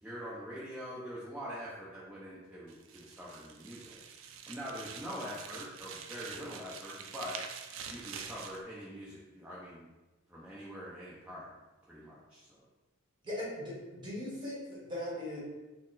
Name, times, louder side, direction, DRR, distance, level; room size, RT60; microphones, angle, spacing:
voice 1, 0.0-4.0 4.5-7.4 7.9-9.9 10.3-11.5 11.9-12.6, equal, 5° right, -9 dB, 0.6 m, -44 dB
sound 1, 2.7-8.6, right 6 dB, 65° right, 0.4 m, -46 dB
voice 2, 13.2-15.4, left 1 dB, 20° right, -6 dB, 1.2 m, -39 dB
4.1 x 2.0 x 4.0 m, 1.1 s
head